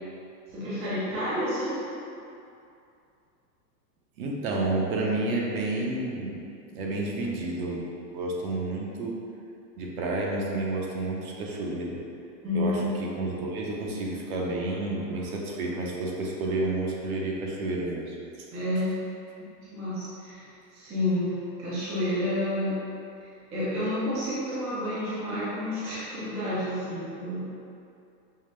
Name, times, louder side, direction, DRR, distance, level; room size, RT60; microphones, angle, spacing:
voice 1, 0.5-1.8 12.4-13.2 18.5-18.9 19.4-22.8 23.5-27.5, left 1 dB, 15° right, -11 dB, 0.4 m, -30 dB
voice 2, 4.2-6.5 6.7-7.8 8.1-9.1 9.8-12.0 12.5-18.5, right 2 dB, 60° right, -2 dB, 0.8 m, -30 dB
5.6 x 2.1 x 3.1 m, 2.6 s
supercardioid pair, 145°, 50 cm